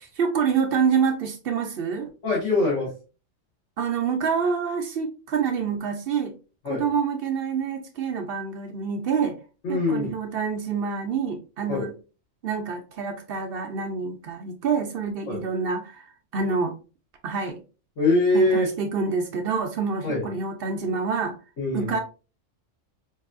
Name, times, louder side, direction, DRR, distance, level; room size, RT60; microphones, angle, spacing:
voice 1, 0.2-2.1 3.8-6.3 6.6-9.4 9.7-11.9 12.4-16.1 16.3-16.7 17.2-17.6 18.3-21.3 21.7-22.0, right 6 dB, 60° right, 5 dB, 0.7 m, -27 dB
voice 2, 2.2-2.9 6.7-6.8 9.6-10.1 11.7-11.9 15.3-15.4 18.0-18.7 20.0-20.3 21.6-21.9, left 2 dB, 70° left, -4 dB, 1.6 m, -23 dB
4.6 x 2.6 x 2.4 m, 0.34 s
omnidirectional pair, 1.3 m